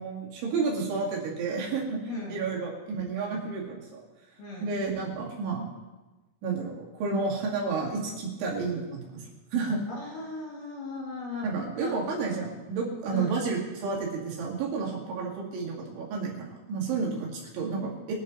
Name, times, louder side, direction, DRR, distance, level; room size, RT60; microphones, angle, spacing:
voice 1, 0.0-2.0 2.3-4.0 4.6-5.7 6.4-9.8 11.4-18.1, right 4 dB, 75° right, -3 dB, 4.8 m, -31 dB
voice 2, 2.1-2.5 3.2-3.4 4.4-4.8 9.9-12.0 13.1-13.4, left 3 dB, 55° left, -3 dB, 2.9 m, -38 dB
23.5 x 8.8 x 4.1 m, 1.2 s
omnidirectional pair, 5.5 m